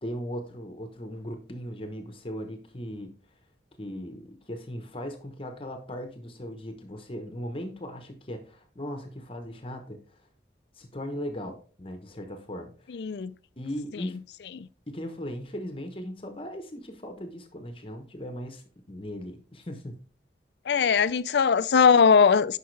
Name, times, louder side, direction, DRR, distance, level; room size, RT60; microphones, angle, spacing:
voice 1, 0.0-3.1 3.8-10.2 10.7-12.9 13.6-14.2 14.9-20.0, equal, 30° left, 0.9 m, -38 dB
voice 2, 12.9-13.3 14.6-14.7 20.7-22.6, left 6 dB, 75° left, 0.4 m, -20 dB
10.0 x 5.7 x 3.3 m
head